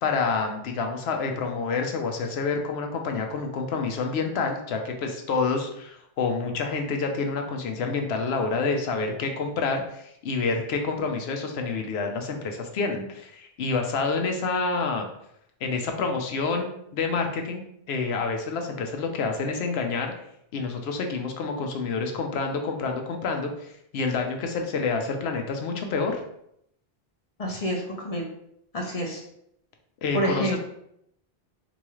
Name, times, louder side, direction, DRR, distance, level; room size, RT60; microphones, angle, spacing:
voice 1, 0.0-15.1 15.6-17.6 17.9-20.1 20.5-26.2 30.0-30.6, left 4 dB, 80° left, 4 dB, 0.9 m, -28 dB
voice 2, 27.4-28.2 28.7-29.2 30.1-30.6, equal, 40° left, -1 dB, 0.7 m, -28 dB
3.9 x 2.3 x 3.0 m, 0.75 s
omnidirectional pair, 1.1 m